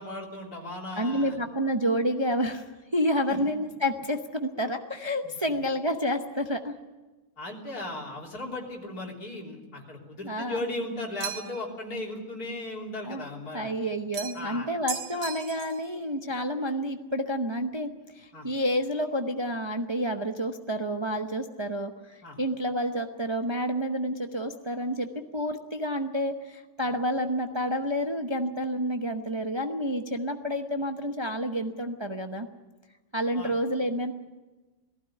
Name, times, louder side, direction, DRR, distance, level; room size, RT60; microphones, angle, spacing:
voice 1, 0.0-1.4 3.3-3.4 5.2-5.6 7.4-13.7 14.3-14.7 18.3-18.5 22.2-22.4 33.3-33.5, left 2 dB, 70° left, -1 dB, 4.0 m, -36 dB
voice 2, 1.0-6.7 10.2-10.6 13.1-13.2 13.5-32.5 33.1-34.1, equal, 20° right, 5 dB, 0.8 m, -29 dB
sound 1, 11.2-11.7 14.1-14.5 14.9-15.8, right 7 dB, 85° right, 1.7 m, -36 dB
18.5 x 16.0 x 9.9 m, 1.2 s
omnidirectional pair, 1.7 m